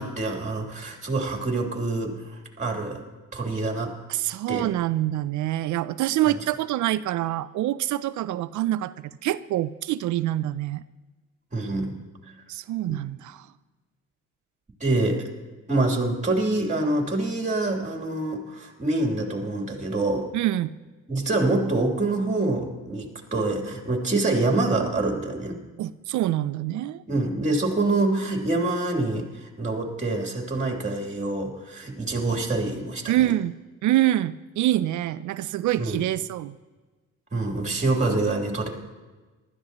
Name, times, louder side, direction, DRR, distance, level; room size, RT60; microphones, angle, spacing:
voice 1, 0.0-3.0 3.3-3.9 4.5-4.7 6.2-6.4 11.5-11.9 12.8-12.9 14.8-15.3 15.7-20.3 21.1-25.6 27.1-33.0 35.8-36.0 37.3-38.7, right 2 dB, 25° right, 1 dB, 3.1 m, -26 dB
voice 2, 4.1-10.8 12.5-13.5 20.3-20.7 25.8-27.0 33.1-33.6 33.8-36.6, right 14 dB, 75° right, 15 dB, 0.5 m, -26 dB
19.5 x 13.0 x 3.0 m, 1.3 s
cardioid pair, 90°, 30 cm